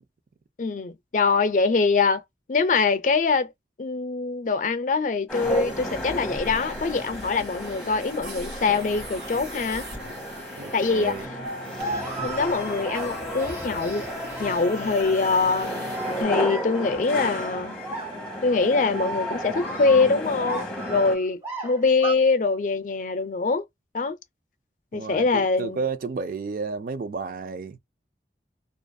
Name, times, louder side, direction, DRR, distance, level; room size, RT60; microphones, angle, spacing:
voice 1, 0.6-2.2 2.5-3.5 3.8-9.8 10.7-11.1 12.2-14.0 14.4-17.8 18.4-23.6 23.9-24.2 24.9-25.8, left 4 dB, 45° left, 0.4 m, -24 dB
sound 1, 5.3-21.1, equal, 5° left, 1.0 m, -34 dB
sound 2, 5.3-16.2, right 1 dB, 85° right, 1.3 m, -40 dB
voice 2, 10.5-11.3 15.4-15.9 24.9-27.8, right 4 dB, 50° right, 0.4 m, -32 dB
sound 3, 11.8-22.1, right 2 dB, 15° right, 1.2 m, -35 dB
2.5 x 2.4 x 2.2 m
head